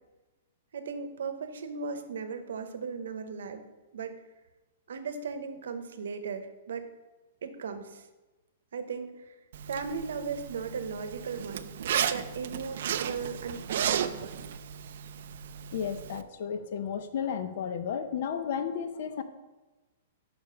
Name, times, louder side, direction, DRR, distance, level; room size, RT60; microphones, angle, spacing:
voice 1, 0.7-3.6 3.9-4.2 4.9-6.8 7.4-8.1 8.7-9.3 9.7-14.5, right 5 dB, 85° right, 9 dB, 0.8 m, -37 dB
Zipper (clothing), 9.5-16.2, right 9 dB, 55° right, 0.4 m, -34 dB
voice 2, 15.7-19.2, left 7 dB, 50° left, 10 dB, 0.6 m, -33 dB
5.7 x 5.0 x 5.7 m, 1.1 s
hypercardioid pair, 170°, 0 cm